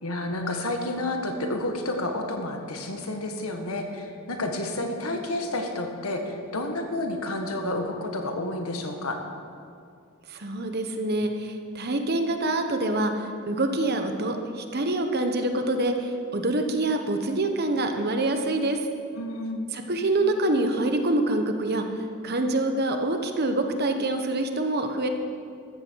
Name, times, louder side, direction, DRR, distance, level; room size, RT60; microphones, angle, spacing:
voice 1, 0.0-9.2 19.2-19.7, left 1 dB, 75° left, 3 dB, 1.7 m, -30 dB
voice 2, 10.3-18.8 19.7-21.9 22.2-25.1, right 2 dB, 45° right, 5 dB, 1.2 m, -26 dB
14.5 x 14.0 x 4.7 m, 2.4 s
head